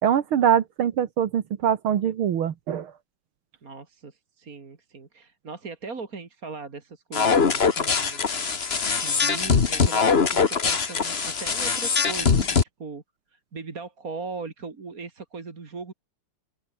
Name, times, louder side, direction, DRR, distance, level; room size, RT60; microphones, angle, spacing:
voice 1, 0.0-2.9, right 9 dB, 75° right, 2.2 m, -23 dB
voice 2, 3.6-8.3 8.7-13.0 13.3-15.9, right 4 dB, 40° right, 2.8 m, -39 dB
sound 1, 7.1-12.6, left 5 dB, 30° left, 1.4 m, -22 dB
open air
omnidirectional pair, 2.4 m